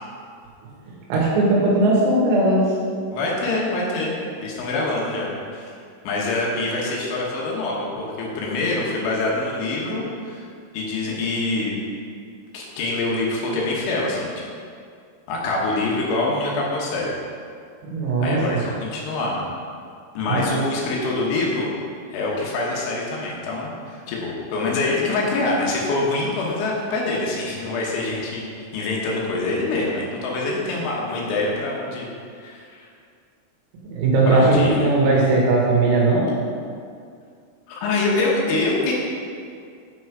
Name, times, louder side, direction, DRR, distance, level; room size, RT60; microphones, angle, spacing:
voice 1, 1.1-2.7 17.8-18.4 20.3-20.4 33.8-36.3, right 2 dB, 90° right, -4 dB, 4.4 m, -18 dB
voice 2, 3.1-5.7 6.1-10.4 10.7-11.8 12.5-14.3 15.3-17.1 18.2-19.4 20.2-21.7 22.1-28.5 28.7-32.1 32.4-32.9 34.3-34.9 37.7-38.9, left 2 dB, 75° left, -3 dB, 3.6 m, -25 dB
8.9 x 6.1 x 4.7 m, 2.3 s
omnidirectional pair, 5.8 m